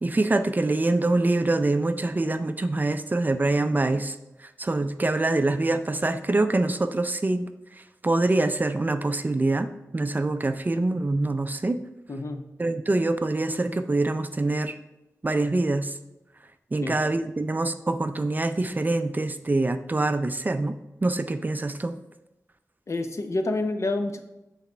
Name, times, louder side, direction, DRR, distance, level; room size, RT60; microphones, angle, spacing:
voice 1, 0.0-4.2 4.6-7.5 8.0-11.8 12.6-14.7 15.2-15.9 16.7-20.8 21.0-22.0, right 2 dB, 30° right, 10 dB, 0.4 m, -25 dB
voice 2, 12.1-12.5 16.8-17.0 22.9-24.2, left 2 dB, 55° left, 7 dB, 0.7 m, -28 dB
8.2 x 4.1 x 4.4 m, 0.98 s
wide cardioid pair, 80°, 6 cm